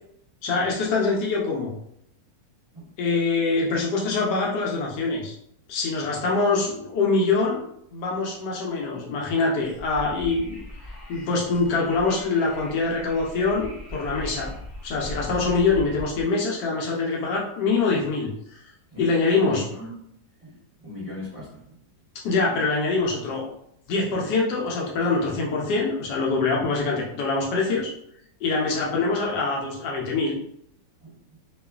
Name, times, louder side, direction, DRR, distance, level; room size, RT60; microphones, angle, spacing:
voice 1, 0.4-1.7 3.0-5.4 5.7-7.6 7.9-10.6 11.1-14.5 14.8-18.6 19.0-19.6 22.2-23.4 23.9-27.9 28.4-30.3, left 3 dB, 75° left, -2 dB, 1.2 m, -24 dB
Wind, 9.6-16.2, left 1 dB, 20° left, 0.9 m, -40 dB
voice 2, 18.9-19.9 20.4-21.8 28.7-28.8 31.0-31.2, left 2 dB, 25° right, -10 dB, 1.0 m, -39 dB
2.9 x 2.3 x 2.3 m, 0.72 s
omnidirectional pair, 1.9 m